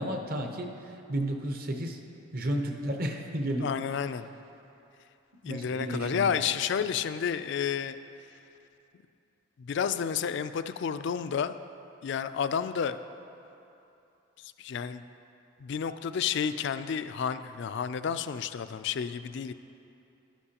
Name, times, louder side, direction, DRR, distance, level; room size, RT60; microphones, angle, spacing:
voice 1, 0.0-2.0 2.3-3.7 5.4-6.3, right 1 dB, 45° right, 3 dB, 0.7 m, -32 dB
voice 2, 3.6-4.3 5.4-8.0 9.6-11.6 12.0-13.0 14.4-15.0 15.6-19.5, left 7 dB, 55° left, 12 dB, 0.3 m, -31 dB
12.0 x 11.5 x 2.9 m, 2.8 s
head